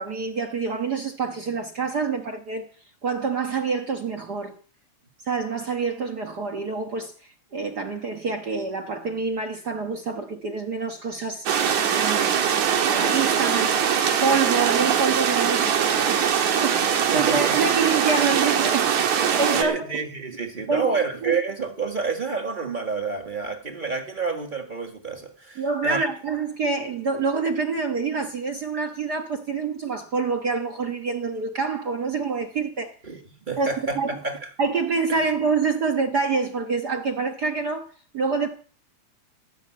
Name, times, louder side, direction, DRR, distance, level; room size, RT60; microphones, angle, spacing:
voice 1, 0.0-2.7 3.0-4.5 5.3-7.1 7.5-11.5 11.9-19.8 20.7-21.4 25.6-32.9 33.6-33.7 33.9-34.1 34.6-37.9 38.1-38.5, right 4 dB, 50° right, 1.3 m, -27 dB
sound 1, 11.5-19.6, right 8 dB, 70° right, 3.0 m, -22 dB
voice 2, 17.1-17.6 19.5-26.0 33.0-33.2 33.5-34.5 35.1-35.3, right 4 dB, 25° right, 1.1 m, -29 dB
17.5 x 6.5 x 8.5 m
omnidirectional pair, 3.5 m